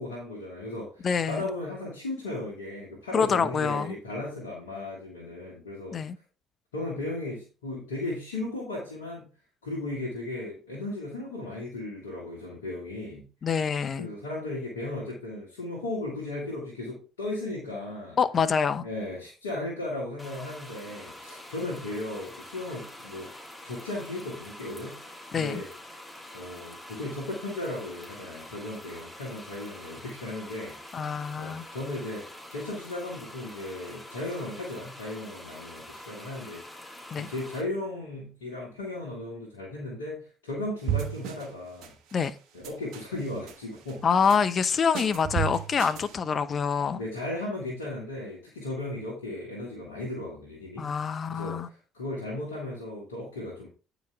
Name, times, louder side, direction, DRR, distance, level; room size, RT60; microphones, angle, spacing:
voice 1, 0.0-6.0 6.7-9.3 9.6-13.2 14.0-18.2 18.8-23.3 23.6-25.0 25.3-25.7 26.3-41.9 42.5-44.1 47.0-50.9 51.3-53.7, left 2 dB, 90° left, 1.9 m, -36 dB
voice 2, 1.0-1.5 3.1-3.9 5.9-6.2 13.4-14.1 18.2-18.9 25.3-25.6 30.9-31.6 37.1-37.3 42.1-42.4 44.0-47.0 50.8-51.7, left 6 dB, 45° left, 0.8 m, -26 dB
sound 1, 20.2-37.6, left 1 dB, 5° left, 3.2 m, -46 dB
sound 2, 40.9-41.5 41.8-42.3 42.6-43.6 43.9-44.4 44.7-46.2, right 11 dB, 70° right, 1.1 m, -33 dB
9.2 x 5.1 x 3.5 m
hypercardioid pair, 55°, 0 cm